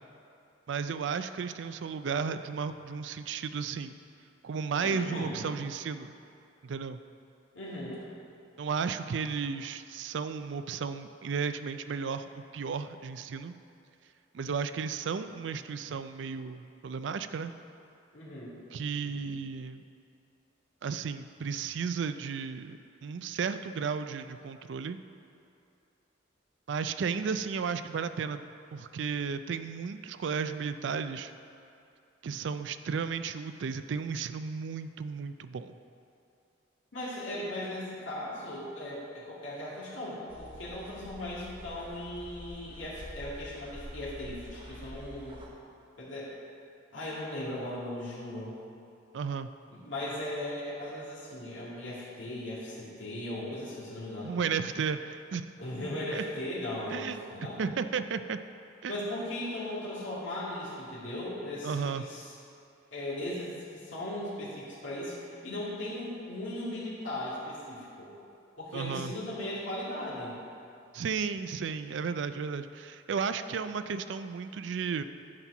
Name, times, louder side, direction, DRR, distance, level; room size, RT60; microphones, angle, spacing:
voice 1, 0.7-3.9 4.4-6.1 6.6-7.0 8.6-13.5 14.3-17.5 18.7-19.8 20.8-25.0 26.7-28.4 28.7-31.3 32.2-35.7 49.1-49.5 54.2-55.5 56.1-56.2 56.9-57.2 57.6-58.4 58.8-59.0 61.6-62.0 68.7-69.1 70.9-75.0, right 6 dB, 70° right, 11 dB, 0.4 m, -34 dB
voice 2, 4.8-5.4 7.5-8.0 18.1-18.6 19.0-19.3 36.9-45.4 46.0-46.3 46.9-48.6 49.7-54.4 55.6-57.6 58.9-62.3 62.9-68.1 68.6-70.4, left 1 dB, 80° left, -8 dB, 2.1 m, -38 dB
sound 1, 40.3-45.5, equal, 30° right, 0.9 m, -47 dB
10.5 x 4.4 x 5.9 m, 2.6 s
head